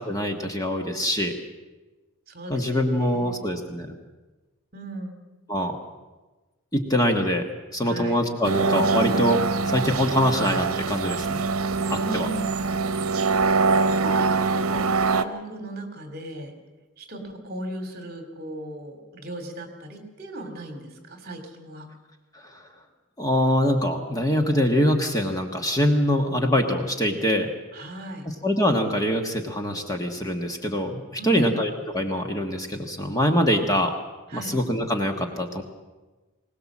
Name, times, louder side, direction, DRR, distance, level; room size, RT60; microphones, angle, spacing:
voice 1, 0.0-1.3 2.5-3.9 5.5-5.8 6.7-11.4 11.9-12.3 22.4-22.6 23.2-27.5 28.4-33.9 34.3-35.6, equal, 15° left, 3 dB, 1.4 m, -24 dB
voice 2, 2.3-3.5 4.7-5.2 7.9-8.2 11.9-12.6 14.0-16.5 17.0-21.9 27.7-28.3 31.2-31.6 34.3-34.6, right 1 dB, 45° right, 6 dB, 2.8 m, -36 dB
sound 1, 8.4-15.2, right 4 dB, 80° right, 0.9 m, -23 dB
21.5 x 18.5 x 7.4 m, 1.2 s
head